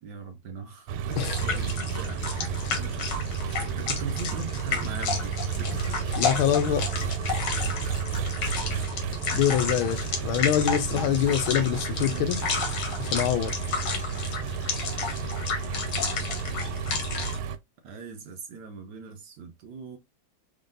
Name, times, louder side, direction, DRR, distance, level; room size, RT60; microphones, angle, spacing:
voice 1, 0.0-6.4 10.9-11.3 12.1-12.6 17.8-20.0, right 5 dB, 65° right, 1.1 m, -40 dB
Engine, 0.9-17.6, right 7 dB, 90° right, 1.5 m, -32 dB
sound 1, 1.1-17.4, left 4 dB, 60° left, 1.6 m, -31 dB
voice 2, 6.2-6.8 9.3-12.4 13.0-13.5, left 10 dB, 80° left, 1.4 m, -25 dB
3.7 x 3.6 x 2.5 m
omnidirectional pair, 2.3 m